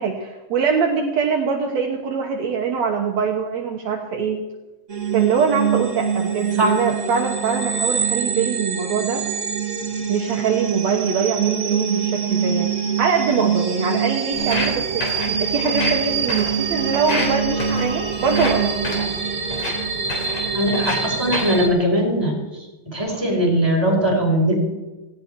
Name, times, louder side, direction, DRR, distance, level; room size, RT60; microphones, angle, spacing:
voice 1, 0.0-4.4 5.1-9.2 10.1-12.7 13.0-19.1, right 5 dB, 65° right, 2 dB, 2.4 m, -23 dB
sound 1, 4.9-21.7, right 7 dB, 35° right, 1.3 m, -24 dB
Walk footsteps, 14.3-21.7, left 2 dB, 45° left, 4.5 m, -30 dB
voice 2, 20.5-22.3 22.9-24.7, equal, 5° right, -1 dB, 4.6 m, -20 dB
18.0 x 17.0 x 4.6 m, 1.1 s
omnidirectional pair, 3.5 m